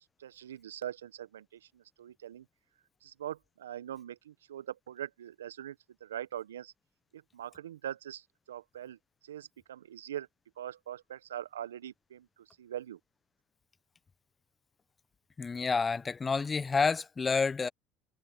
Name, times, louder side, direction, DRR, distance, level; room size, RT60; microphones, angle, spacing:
voice 1, 0.2-1.4 2.0-2.4 3.0-5.7 6.0-6.7 7.1-8.2 8.5-9.0 9.3-10.3 10.6-12.2 12.6-13.0, right 11 dB, 80° right, 1.6 m, -42 dB
voice 2, 15.4-17.7, left 4 dB, 25° left, 1.3 m, -29 dB
hypercardioid pair, 65°, 0 cm